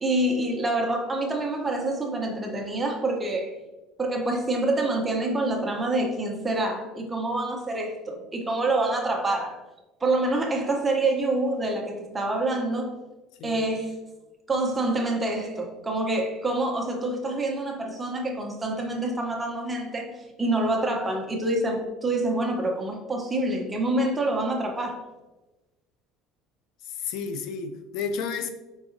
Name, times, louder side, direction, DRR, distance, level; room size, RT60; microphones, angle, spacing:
voice 1, 0.0-3.5 4.0-9.6 10.0-13.0 13.4-13.9 14.5-25.0, right 2 dB, 15° right, 1 dB, 0.7 m, -26 dB
voice 2, 26.8-28.5, left 5 dB, 65° left, 9 dB, 0.4 m, -32 dB
4.7 x 3.9 x 2.6 m, 1.1 s
cardioid pair, 140°, 0 cm